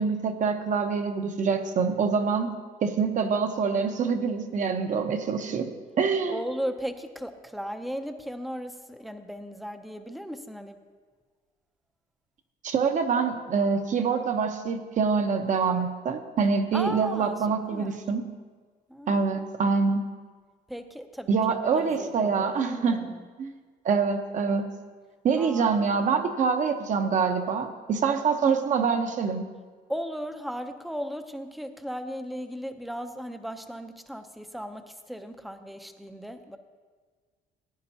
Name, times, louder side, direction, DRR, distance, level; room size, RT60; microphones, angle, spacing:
voice 1, 0.0-2.5 2.8-5.7 6.0-6.4 12.6-18.3 19.1-20.0 21.3-23.1 23.4-23.5 23.8-24.6 25.2-29.5, right 5 dB, 50° right, 6 dB, 1.0 m, -25 dB
voice 2, 6.3-10.8 16.7-17.4 17.7-18.0 18.9-19.3 20.7-23.3 25.4-25.8 29.9-36.6, equal, ahead, 8 dB, 0.6 m, -36 dB
16.5 x 9.7 x 2.8 m, 1.5 s
cardioid pair, 110°, 17 cm